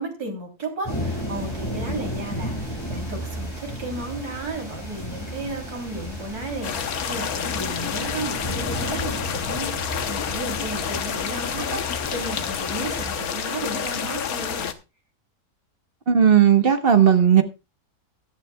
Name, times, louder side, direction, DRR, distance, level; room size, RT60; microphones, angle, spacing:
voice 1, 0.0-14.7, right 2 dB, 85° right, 3 dB, 3.9 m, -34 dB
sound 1, 0.8-13.1, equal, 15° left, 8.0 m, -33 dB
sound 2, 6.6-14.7, left 8 dB, 70° left, 1.4 m, -29 dB
voice 2, 16.1-17.4, right 8 dB, 40° right, 8 dB, 1.2 m, -15 dB
16.0 x 11.5 x 2.3 m, 0.28 s
omnidirectional pair, 1.6 m